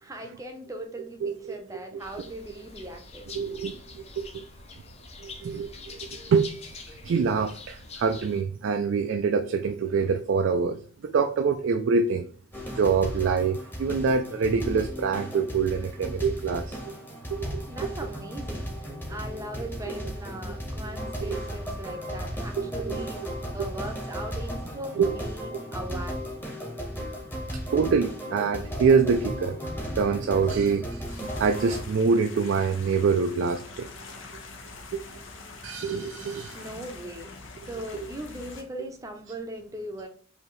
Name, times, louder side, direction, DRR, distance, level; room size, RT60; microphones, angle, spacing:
voice 1, 0.0-3.3 17.7-18.7 19.1-26.2 36.5-37.3 37.7-40.1, right 1 dB, 15° right, 0.6 m, -39 dB
voice 2, 1.2-1.6 3.3-4.4 5.2-5.7 6.3-10.8 11.1-12.3 12.7-17.0 17.3-17.9 21.2-21.4 22.6-23.0 25.0-25.2 27.7-29.6 30.0-33.9 34.9-35.0 35.6-36.6, right 5 dB, 65° right, 0.3 m, -25 dB
sound 1, 2.0-8.4, left 4 dB, 30° left, 0.6 m, -45 dB
sound 2, 12.5-31.8, equal, 10° left, 1.0 m, -35 dB
sound 3, 31.0-38.6, left 3 dB, 75° left, 0.7 m, -44 dB
4.8 x 2.8 x 3.1 m
head